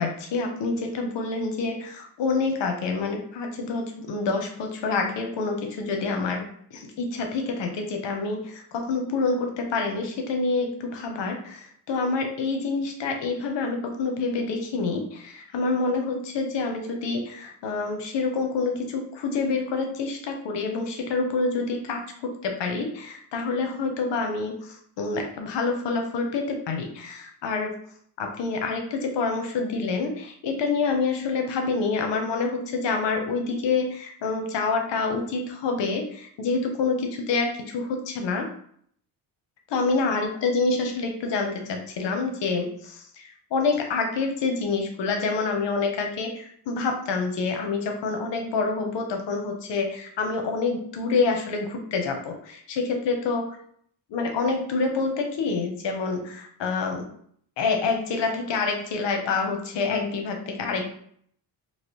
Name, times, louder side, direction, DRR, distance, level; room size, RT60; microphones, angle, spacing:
voice 1, 0.0-27.8 28.2-38.5 39.7-53.5 54.1-57.1 57.6-60.9, left 4 dB, 85° left, 3 dB, 0.8 m, -27 dB
3.1 x 2.7 x 3.0 m, 0.62 s
cardioid pair, 115°, 42 cm